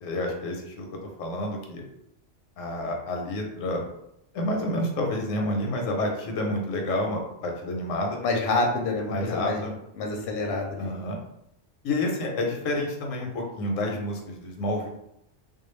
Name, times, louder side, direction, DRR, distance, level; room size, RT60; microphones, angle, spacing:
voice 1, 0.0-1.8 2.6-3.8 4.3-8.2 9.1-9.7 10.8-11.2 11.8-14.9, left 1 dB, 85° left, 1 dB, 1.0 m, -29 dB
voice 2, 8.2-9.7 10.0-10.9, left 2 dB, 65° left, 1 dB, 0.7 m, -27 dB
2.3 x 2.2 x 3.0 m, 0.80 s
omnidirectional pair, 1.3 m